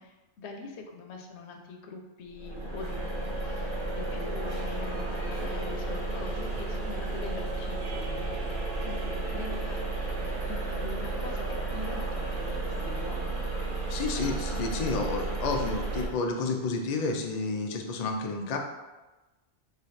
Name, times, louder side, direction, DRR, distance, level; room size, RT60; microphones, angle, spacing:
voice 1, 0.0-8.5 8.8-9.8 10.4-13.4, left 3 dB, 90° left, 3 dB, 0.9 m, -43 dB
sound 1, 2.3-16.1, right 2 dB, 45° right, 0.8 m, -32 dB
voice 2, 13.9-18.6, left 3 dB, 55° left, 3 dB, 0.4 m, -30 dB
3.2 x 2.3 x 4.0 m, 1.1 s
omnidirectional pair, 1.1 m